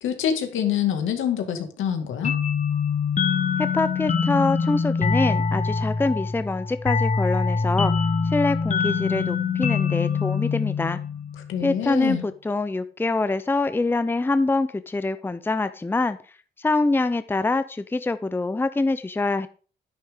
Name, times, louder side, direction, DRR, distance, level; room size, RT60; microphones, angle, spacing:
voice 1, 0.0-2.4 11.5-12.3, left 9 dB, 80° left, 6 dB, 2.1 m, -26 dB
sound 1, 2.2-11.6, left 5 dB, 40° left, 1.4 m, -24 dB
voice 2, 3.6-7.9 8.2-11.0 11.6-16.2 16.6-19.5, left 3 dB, 10° left, 12 dB, 0.6 m, -25 dB
10.0 x 9.2 x 3.7 m, 0.38 s
cardioid pair, 90°, 20 cm